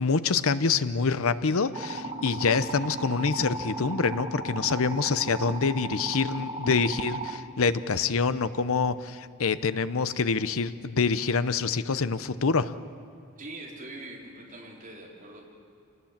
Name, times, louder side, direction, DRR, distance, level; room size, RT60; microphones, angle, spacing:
voice 1, 0.0-12.7, left 5 dB, 65° left, 13 dB, 0.8 m, -26 dB
sound 1, 1.7-7.4, right 2 dB, 25° right, 1.4 m, -36 dB
voice 2, 13.4-15.5, right 2 dB, 40° right, -2 dB, 4.3 m, -43 dB
26.5 x 19.5 x 7.4 m, 2.5 s
head